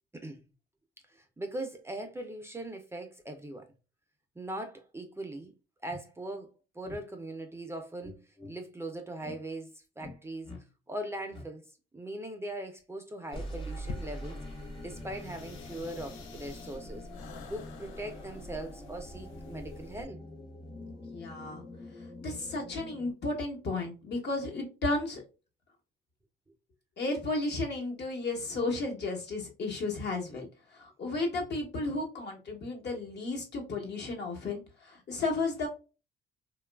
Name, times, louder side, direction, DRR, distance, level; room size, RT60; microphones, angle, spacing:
voice 1, 1.1-3.7 4.4-5.5 5.8-10.6 10.9-11.7 11.9-14.4 14.8-17.1 17.5-20.2, right 1 dB, 15° right, 0.4 m, -40 dB
sound 1, 5.4-5.5 5.9-6.0 6.8-7.0 8.0-8.5 9.2-9.4 10.0-10.2 10.4-10.6 11.3-11.5 13.3-23.1, left 1 dB, 25° left, 0.9 m, -45 dB
sound 2, 13.3-20.0, left 2 dB, 85° left, 0.5 m, -46 dB
voice 2, 21.1-21.6 22.2-25.2 27.0-30.5 30.7-35.7, left 2 dB, 60° left, 1.1 m, -33 dB
2.9 x 2.3 x 2.2 m
cardioid pair, 90°, 20 cm